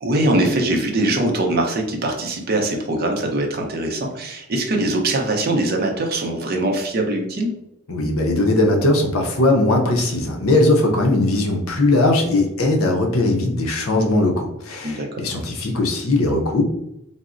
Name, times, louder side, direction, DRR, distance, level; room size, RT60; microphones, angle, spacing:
voice 1, 0.0-7.5 14.8-15.2, right 1 dB, 45° right, 2 dB, 0.5 m, -22 dB
voice 2, 7.9-16.6, left 2 dB, 70° left, 2 dB, 0.6 m, -19 dB
3.9 x 2.0 x 2.4 m, 0.83 s
head